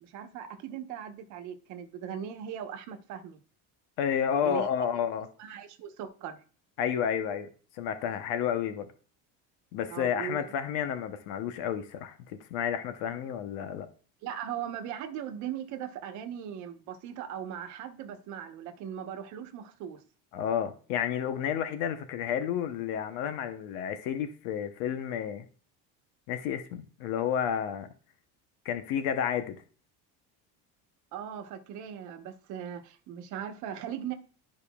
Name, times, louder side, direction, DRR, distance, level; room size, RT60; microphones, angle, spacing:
voice 1, 0.0-3.4 4.4-4.9 5.4-6.4 9.9-10.5 14.2-20.0 31.1-34.1, right 9 dB, 55° right, 1.1 m, -39 dB
voice 2, 4.0-5.3 6.8-7.5 7.8-8.9 9.7-13.9 20.3-25.5 26.3-27.9 28.6-29.6, left 8 dB, 80° left, 0.9 m, -31 dB
12.0 x 5.2 x 2.3 m
cardioid pair, 170°, 34 cm